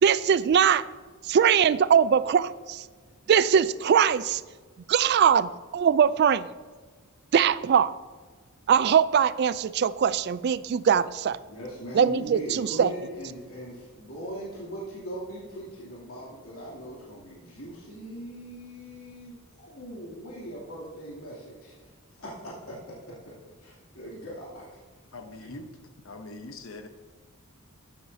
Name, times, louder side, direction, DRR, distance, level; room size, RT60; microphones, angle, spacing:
voice 1, 0.0-0.8 1.3-2.8 3.3-4.4 4.9-6.5 7.3-7.9 8.7-11.4 11.9-12.9, right 7 dB, 50° right, 16 dB, 0.3 m, -21 dB
voice 2, 11.5-23.3 23.6-24.7 25.3-25.6, right 1 dB, 80° left, -6 dB, 2.8 m, -40 dB
voice 3, 25.1-25.7 26.0-26.9, left 2 dB, 65° left, 7 dB, 0.8 m, -42 dB
13.0 x 9.2 x 2.7 m, 1.5 s
head